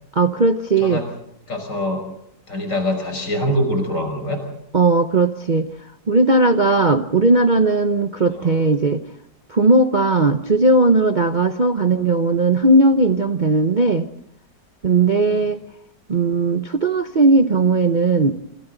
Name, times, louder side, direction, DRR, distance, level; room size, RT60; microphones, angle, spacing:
voice 1, 0.1-1.0 4.7-5.7 6.1-9.0 9.5-14.1 14.8-15.6 16.1-18.3, right 3 dB, 40° right, 6 dB, 0.7 m, -17 dB
voice 2, 1.5-2.0 2.5-4.4 8.3-8.6 15.2-15.5, equal, 70° left, 5 dB, 6.6 m, -24 dB
27.5 x 26.5 x 4.0 m, 0.78 s
omnidirectional pair, 2.0 m